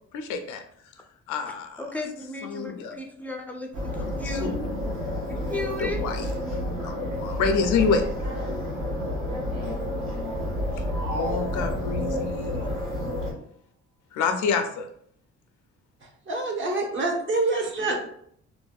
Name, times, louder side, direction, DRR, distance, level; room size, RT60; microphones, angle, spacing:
voice 1, 0.1-0.6 1.3-1.8 2.4-2.9 4.0-5.0 5.8-6.3 6.8-8.0 10.8-12.7 14.1-14.9, left 5 dB, 75° left, 6 dB, 0.5 m, -28 dB
voice 2, 1.5-4.5 5.3-6.0 17.8-17.9, left 2 dB, 5° left, 2 dB, 0.4 m, -35 dB
sound 1, 3.7-13.3, left 1 dB, 70° right, 1.4 m, -30 dB
sound 2, 10.9-12.4, equal, 85° right, 0.8 m, -35 dB
voice 3, 16.3-18.0, right 2 dB, 40° right, 1 dB, 0.7 m, -26 dB
2.6 x 2.1 x 2.3 m, 0.65 s
cardioid pair, 90°, 30 cm